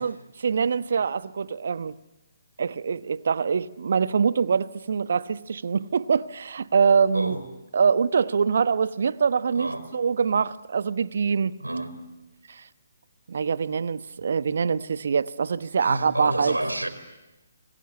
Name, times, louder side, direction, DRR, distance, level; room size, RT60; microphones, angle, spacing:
voice 1, 0.0-1.9 2.6-7.4 7.7-11.6 12.5-12.6 13.3-16.6, right 6 dB, 55° right, 1.0 m, -24 dB
voice 2, 9.6-9.9 11.6-12.0 15.8-16.9, right 1 dB, 80° right, 4.8 m, -29 dB
27.5 x 22.0 x 9.8 m
figure-of-eight pair, 135°, 0 cm